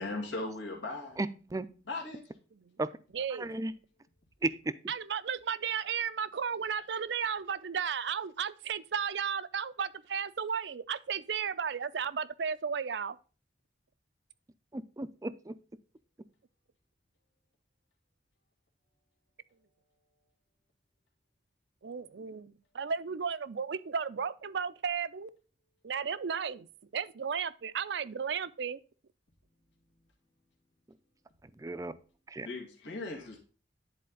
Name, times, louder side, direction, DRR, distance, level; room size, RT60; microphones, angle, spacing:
voice 1, 0.0-1.2 1.9-2.2 32.5-33.4, left 2 dB, 80° left, 1.9 m, -38 dB
voice 2, 1.2-1.7 2.8-2.9 3.4-3.7 4.4-4.7 14.7-15.5 31.6-31.9 32.3-32.5, right 2 dB, 20° right, 0.4 m, -34 dB
voice 3, 3.1-3.5 4.9-13.2 21.8-25.3 25.8-26.7 26.9-28.8, right 6 dB, 70° right, 0.5 m, -34 dB
10.0 x 4.2 x 3.8 m
head